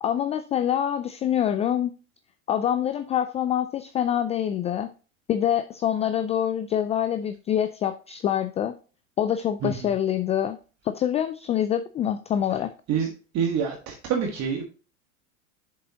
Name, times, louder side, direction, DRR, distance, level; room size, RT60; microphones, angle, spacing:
voice 1, 0.0-1.9 2.5-4.9 5.3-8.7 9.2-10.6 10.8-12.7, left 10 dB, 15° left, 11 dB, 0.3 m, -25 dB
voice 2, 13.3-14.6, right 7 dB, 40° right, 2 dB, 1.7 m, -26 dB
7.4 x 6.6 x 2.9 m, 0.35 s
hypercardioid pair, 90°, 41 cm